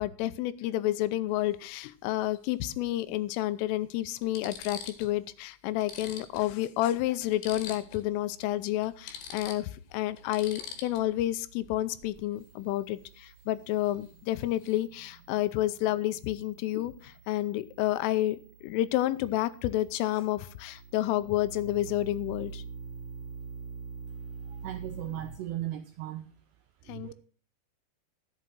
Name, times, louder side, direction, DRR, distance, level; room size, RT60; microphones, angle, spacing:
voice 1, 0.0-22.6 26.9-27.1, left 14 dB, 85° left, 3.2 m, -30 dB
sound 1, 1.3-1.5 3.0-3.1 3.7-3.8 4.2-5.2 5.5-5.6 5.8-8.1 8.4-8.5 8.8-11.2 13.8-14.1 14.3-14.8, left 7 dB, 65° left, 3.4 m, -44 dB
sound 2, 7.5-25.3, right 5 dB, ahead, 1.7 m, -47 dB
voice 2, 24.6-26.2 26.9-27.1, right 13 dB, 85° right, 2.4 m, -37 dB
11.5 x 8.3 x 6.0 m
omnidirectional pair, 5.7 m